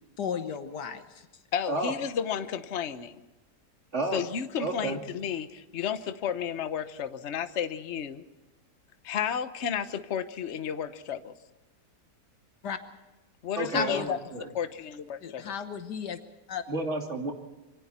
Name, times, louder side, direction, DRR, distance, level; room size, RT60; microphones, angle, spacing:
voice 1, 0.2-1.3 12.6-12.8 13.7-14.1 15.2-16.2 16.5-16.6, left 7 dB, 75° left, 8 dB, 1.7 m, -33 dB
voice 2, 1.5-3.2 4.1-8.2 9.0-11.3 13.4-14.2 14.5-15.5, left 8 dB, 45° left, 10 dB, 1.2 m, -32 dB
voice 3, 3.9-4.2 4.6-5.0 13.6-14.5 16.7-17.3, right 2 dB, 40° right, 2 dB, 3.2 m, -31 dB
27.5 x 24.5 x 4.3 m, 1.1 s
omnidirectional pair, 1.8 m